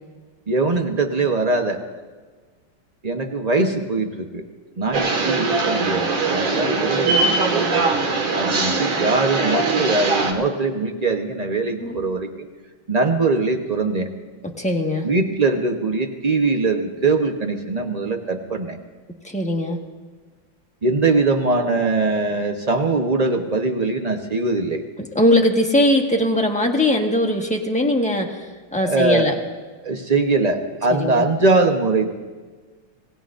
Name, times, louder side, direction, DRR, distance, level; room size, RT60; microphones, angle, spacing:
voice 1, 0.5-1.8 3.0-4.4 4.8-7.9 8.3-12.5 12.9-14.1 15.0-18.8 20.8-24.8 28.8-29.3 29.8-32.1, right 3 dB, 55° right, 4 dB, 0.4 m, -21 dB
sound 1, 4.9-10.3, right 3 dB, 85° right, 2.6 m, -21 dB
voice 2, 14.4-15.1 19.2-19.8 25.0-29.3 30.9-31.3, left 1 dB, 5° left, 1 dB, 1.0 m, -20 dB
26.5 x 19.5 x 2.6 m, 1.4 s
omnidirectional pair, 2.3 m